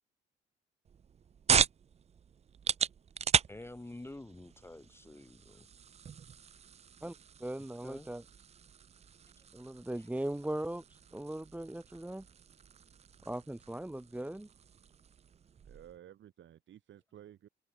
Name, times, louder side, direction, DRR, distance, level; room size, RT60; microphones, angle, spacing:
sound 1, 0.8-16.0, right 7 dB, 35° right, 0.5 m, -37 dB
voice 1, 3.5-5.7 7.8-8.1 9.4-9.5 10.0-10.1, left 2 dB, 10° left, 2.3 m, -48 dB
voice 2, 7.4-8.2 9.5-12.2 13.2-14.5, right 1 dB, 5° right, 1.5 m, -39 dB
voice 3, 15.6-17.5, right 11 dB, 70° right, 3.7 m, -54 dB
open air
cardioid pair, 90°, 20 cm